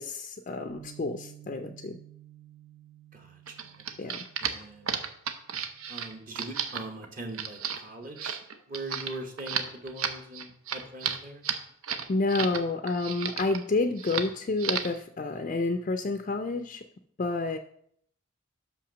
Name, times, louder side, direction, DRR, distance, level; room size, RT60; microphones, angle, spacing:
voice 1, 0.0-2.0 4.0-4.2 12.1-16.8 17.2-17.6, left 3 dB, 40° left, 6 dB, 0.4 m, -29 dB
Bass guitar, 0.7-6.9, right 11 dB, 70° right, 1.2 m, -53 dB
sound 1, 3.5-12.6 12.9-13.6 14.0-14.3 14.6-15.0, right 7 dB, 90° right, 0.7 m, -33 dB
voice 2, 4.4-5.0 5.9-8.4 8.7-11.4, right 1 dB, 40° right, 3 dB, 0.9 m, -41 dB
6.0 x 5.7 x 6.1 m, 0.67 s
head